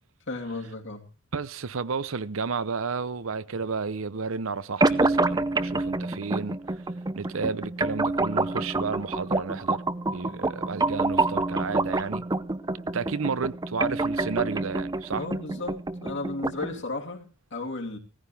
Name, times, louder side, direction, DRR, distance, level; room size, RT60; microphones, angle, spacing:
voice 1, 0.3-1.0 15.1-15.7 16.0-18.0, left 2 dB, 60° left, 2.9 m, -34 dB
voice 2, 1.3-6.6 7.1-9.8 10.1-12.3 12.9-15.2, right 5 dB, 70° right, 0.7 m, -32 dB
sound 1, 4.8-16.8, right 2 dB, 20° right, 0.6 m, -27 dB
17.0 x 14.5 x 3.5 m
head